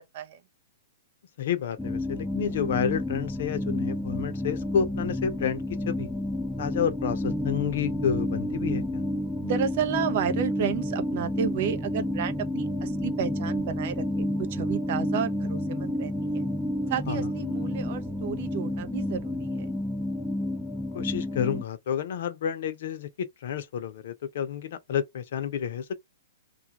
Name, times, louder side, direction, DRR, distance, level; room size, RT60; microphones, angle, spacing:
voice 1, 1.4-6.1 6.6-9.0 17.1-17.3 20.9-25.9, left 8 dB, 65° left, 0.6 m, -30 dB
sound 1, 1.8-21.6, left 1 dB, ahead, 0.3 m, -30 dB
voice 2, 9.4-16.4 16.9-19.7, right 8 dB, 55° right, 0.5 m, -32 dB
2.3 x 2.2 x 2.9 m
hypercardioid pair, 140°, 0 cm